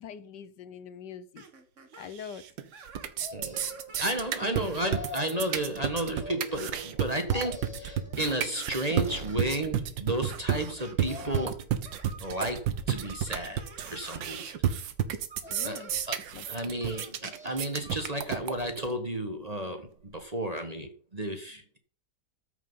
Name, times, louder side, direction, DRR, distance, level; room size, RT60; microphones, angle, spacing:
voice 1, 0.0-1.4 2.0-2.5 14.8-14.9 15.5-15.9 16.3-16.8, left 8 dB, 70° left, 1.4 m, -44 dB
sound 1, 1.4-2.1 2.7-3.2 3.5-4.4 5.4-6.1 7.5-7.7 8.2-9.4 10.2-10.4 10.8-11.6 11.8-12.5 12.9-14.5 15.3-16.0 16.8-17.1 17.8-18.1, right 5 dB, 45° right, 1.8 m, -50 dB
sound 2, 2.2-2.6 2.9-18.9, right 9 dB, 85° right, 1.8 m, -31 dB
sound 3, 3.2-4.0 4.6-5.5 6.2-7.0 7.3-8.2 8.8-9.6 10.8-11.7 12.2-12.9 13.6-14.4 15.4-16.2 16.9-17.9 18.2-18.3, left 1 dB, 5° right, 1.7 m, -46 dB
voice 2, 3.3-3.7 4.0-11.7 12.2-14.5 15.6-16.2 16.5-21.8, right 1 dB, 25° right, 1.3 m, -33 dB
13.5 x 6.5 x 5.5 m
omnidirectional pair, 1.9 m